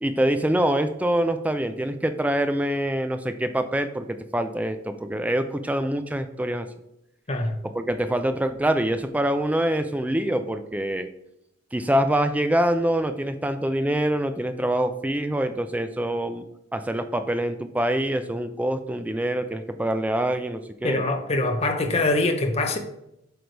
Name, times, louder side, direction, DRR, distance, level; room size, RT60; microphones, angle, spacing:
voice 1, 0.0-6.7 7.7-11.1 11.7-16.5 16.7-21.0, right 1 dB, 5° right, 0.3 m, -25 dB
voice 2, 20.8-22.8, left 2 dB, 30° left, 0.7 m, -23 dB
7.9 x 3.4 x 4.5 m
head